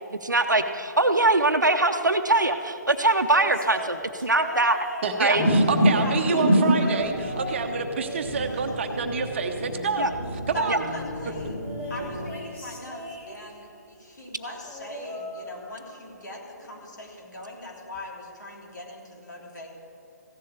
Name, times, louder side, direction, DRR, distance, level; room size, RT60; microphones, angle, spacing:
voice 1, 0.2-4.8 5.2-5.4 10.0-10.1 10.7-10.8, right 2 dB, 80° right, 5 dB, 0.8 m, -22 dB
sound 1, 2.8-6.1 6.7-7.7 8.0-9.5 11.6-13.7 14.6-16.1 16.4-16.8 17.9-18.0, left 1 dB, 15° left, 1.6 m, -39 dB
voice 2, 5.0-10.1 10.5-10.8, right 4 dB, 40° right, 5 dB, 0.9 m, -27 dB
sound 2, 5.3-12.3, equal, 35° left, 4.1 m, -26 dB
voice 3, 5.9-6.5 10.5-11.5 11.9-19.7, left 2 dB, 75° left, -1 dB, 3.2 m, -40 dB
15.5 x 7.5 x 8.3 m, 2.6 s
figure-of-eight pair, 135°, 10 cm